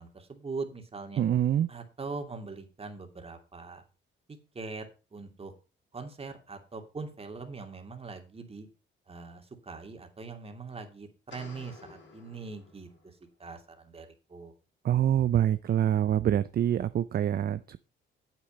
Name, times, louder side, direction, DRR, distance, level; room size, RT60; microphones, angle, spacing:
voice 1, 0.0-1.2 1.7-3.8 4.3-4.9 5.1-5.5 5.9-8.7 9.1-14.5, right 4 dB, 30° right, 4 dB, 2.7 m, -42 dB
voice 2, 1.2-1.7 14.8-17.8, right 10 dB, 50° right, 14 dB, 0.6 m, -25 dB
sound 1, 11.3-13.2, left 3 dB, 70° left, 5.3 m, -52 dB
9.2 x 8.3 x 5.3 m, 0.31 s
cardioid pair, 90°, 20 cm